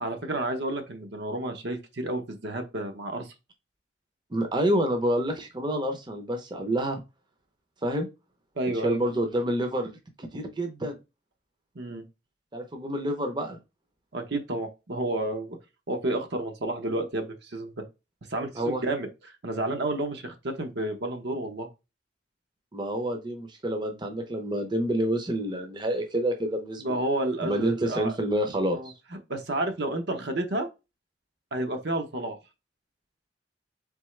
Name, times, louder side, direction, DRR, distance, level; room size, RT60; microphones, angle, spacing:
voice 1, 0.0-3.3 8.6-9.0 11.7-12.0 14.1-15.6 15.9-17.8 18.3-19.1 19.4-21.7 26.8-28.1 28.7-28.9 29.3-30.7 31.5-32.4, right 2 dB, 65° right, 0.8 m, -30 dB
voice 2, 4.3-7.0 7.8-8.1 8.8-9.9 10.2-11.0 12.5-13.6 18.6-18.8 22.7-26.9 27.4-28.9, right 1 dB, 25° right, 0.6 m, -28 dB
3.8 x 3.5 x 3.2 m
head